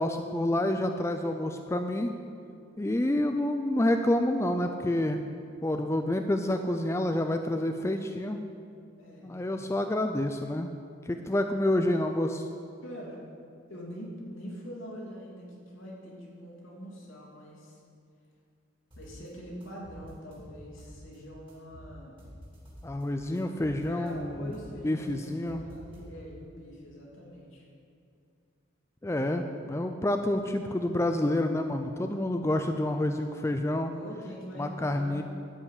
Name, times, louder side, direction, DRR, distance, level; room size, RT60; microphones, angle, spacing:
voice 1, 0.0-2.1 2.8-5.2 5.6-8.4 9.2-10.7 11.1-12.4 22.8-24.5 24.8-25.6 29.0-33.9 34.6-35.2, left 1 dB, 15° left, 6 dB, 0.4 m, -28 dB
voice 2, 9.0-9.6 12.8-13.2 13.7-17.8 19.0-22.2 23.8-27.7 33.9-35.2, equal, 80° left, -4 dB, 2.8 m, -44 dB
sound 1, 18.9-19.3 19.6-21.2 21.5-23.1 23.4-26.4, equal, 25° right, 2.7 m, -49 dB
12.5 x 5.6 x 8.4 m, 2.5 s
head